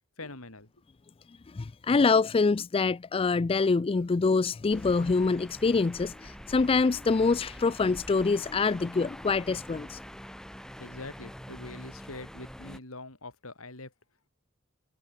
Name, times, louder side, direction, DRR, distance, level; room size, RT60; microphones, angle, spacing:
voice 1, 0.2-0.7 10.8-13.9, left 2 dB, 70° left, 4.5 m, -43 dB
voice 2, 1.5-10.0, left 4 dB, 25° left, 0.4 m, -25 dB
sound 1, 4.7-12.8, equal, 5° left, 1.2 m, -45 dB
head